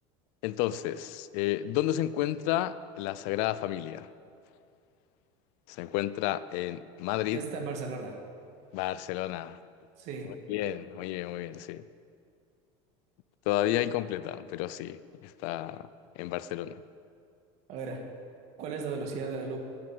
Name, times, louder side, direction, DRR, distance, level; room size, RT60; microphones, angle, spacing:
voice 1, 0.4-4.1 5.7-7.5 8.7-9.6 10.5-11.8 13.5-15.9 16.2-16.8, left 13 dB, 60° left, 16 dB, 0.5 m, -31 dB
voice 2, 7.3-8.2 10.0-10.4 17.7-18.1 18.6-19.6, right 4 dB, 50° right, 3 dB, 1.9 m, -36 dB
11.5 x 9.7 x 7.7 m, 2.4 s
cardioid pair, 155°, 14 cm